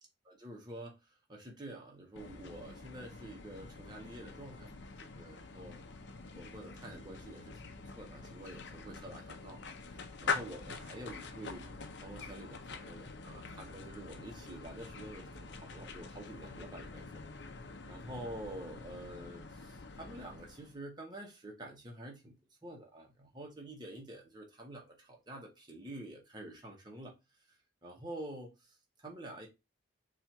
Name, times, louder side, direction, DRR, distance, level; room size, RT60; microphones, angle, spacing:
voice 1, 0.2-1.0 1.3-5.8 6.3-7.6 7.9-9.6 10.2-17.2 17.9-22.4 22.6-27.1 27.8-29.5, right 1 dB, 20° right, 0.9 m, -48 dB
sound 1, 2.2-20.8, left 4 dB, 55° left, 0.6 m, -45 dB
4.3 x 2.4 x 4.4 m
head